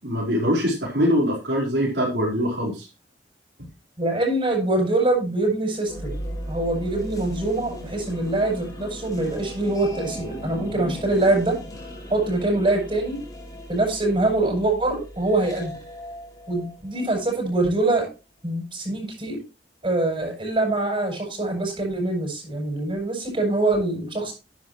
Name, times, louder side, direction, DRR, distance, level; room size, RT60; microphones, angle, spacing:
voice 1, 0.0-2.9, equal, 85° right, -3 dB, 4.4 m, -23 dB
voice 2, 4.0-6.2 6.5-11.6 12.1-13.2 13.7-15.8 16.5-18.1 18.4-19.4 19.8-24.3, right 2 dB, 30° right, 1 dB, 7.6 m, -24 dB
sound 1, 5.8-17.7, equal, 20° left, 4.6 m, -37 dB
11.0 x 10.5 x 3.1 m, 0.28 s
head